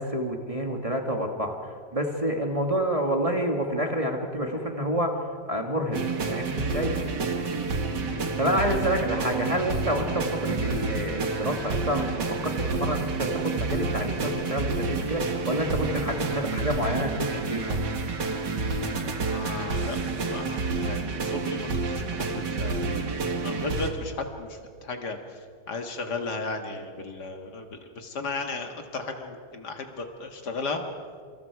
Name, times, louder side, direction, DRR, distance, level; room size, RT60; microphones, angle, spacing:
voice 1, 0.0-1.6 1.9-5.1 5.5-6.9 8.1-17.8, equal, 20° right, 2 dB, 1.7 m, -28 dB
sound 1, 5.9-23.9, right 3 dB, 75° right, 2.2 m, -29 dB
voice 2, 8.0-8.3 19.3-22.3 22.6-22.9 23.4-25.2 25.7-30.8, left 3 dB, 65° left, 5 dB, 2.3 m, -35 dB
27.5 x 25.5 x 4.8 m, 2.1 s
omnidirectional pair, 1.9 m